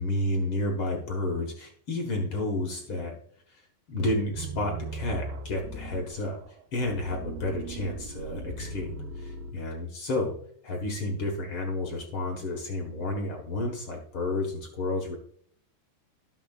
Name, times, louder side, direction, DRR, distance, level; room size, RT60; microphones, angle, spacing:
voice 1, 0.0-3.2 3.5-3.6 3.9-6.4 6.7-10.4 10.6-15.2, left 2 dB, 75° left, 1 dB, 1.2 m, -31 dB
sound 1, 4.3-9.5, right 3 dB, 70° right, 2.5 m, -38 dB
13.5 x 7.1 x 2.4 m, 0.62 s
omnidirectional pair, 4.9 m